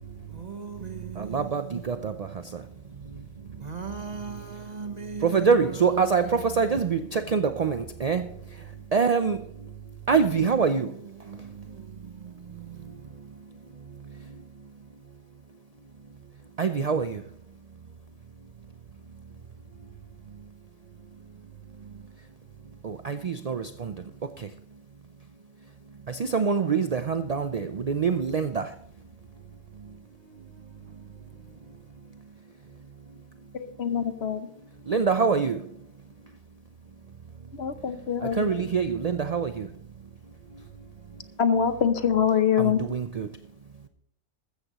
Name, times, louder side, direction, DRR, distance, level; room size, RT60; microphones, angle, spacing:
voice 1, 0.4-1.8 3.6-6.3, right 5 dB, 35° right, 0.9 m, -37 dB
voice 2, 1.2-2.6 5.2-9.5 10.1-11.0 16.6-17.3 22.8-24.5 26.1-28.7 34.9-35.8 38.2-39.7 42.6-43.4, right 5 dB, 65° right, 0.3 m, -25 dB
voice 3, 33.5-34.5 37.5-38.4 41.4-42.8, left 8 dB, 55° left, 1.0 m, -24 dB
14.5 x 13.5 x 3.0 m
omnidirectional pair, 1.4 m